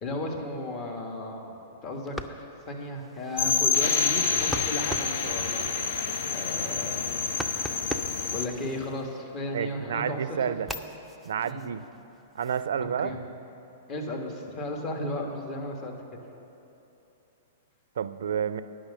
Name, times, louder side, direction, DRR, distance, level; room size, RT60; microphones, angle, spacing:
voice 1, 0.0-7.3 8.3-10.6 11.4-11.6 12.8-13.2 13.9-15.9, left 1 dB, 35° left, 1 dB, 1.5 m, -35 dB
sound 1, 1.9-9.6 10.0-12.7, equal, ahead, 0.5 m, -41 dB
sound 2, 3.4-8.5, left 5 dB, 60° left, 0.6 m, -27 dB
voice 2, 9.5-10.7 11.3-11.8 12.3-13.1 18.0-18.6, right 8 dB, 65° right, 14 dB, 0.4 m, -29 dB
10.0 x 6.3 x 7.0 m, 2.9 s
figure-of-eight pair, 105°, 0 cm